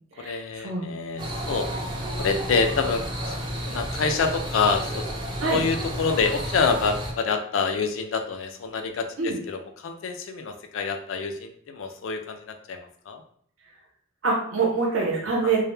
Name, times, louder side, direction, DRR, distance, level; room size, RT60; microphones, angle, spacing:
voice 1, 0.2-1.7 2.2-5.1 5.5-13.2 15.4-15.5, left 4 dB, 75° left, 6 dB, 0.4 m, -27 dB
sound 1, 1.2-7.1, right 1 dB, 25° right, 0.4 m, -31 dB
voice 2, 14.2-15.6, right 4 dB, 80° right, -2 dB, 0.7 m, -24 dB
2.1 x 2.1 x 3.1 m, 0.62 s
head